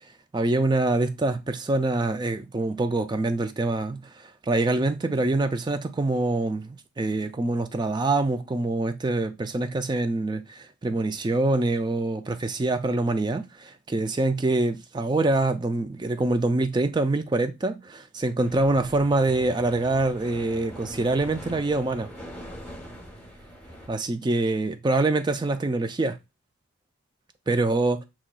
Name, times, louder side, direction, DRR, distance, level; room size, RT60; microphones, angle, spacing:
voice 1, 0.3-22.1 23.9-26.2 27.5-28.0, right 2 dB, 20° right, 0.3 m, -25 dB
sound 1, 18.4-23.9, equal, 5° left, 0.9 m, -42 dB
7.3 x 2.9 x 2.3 m
head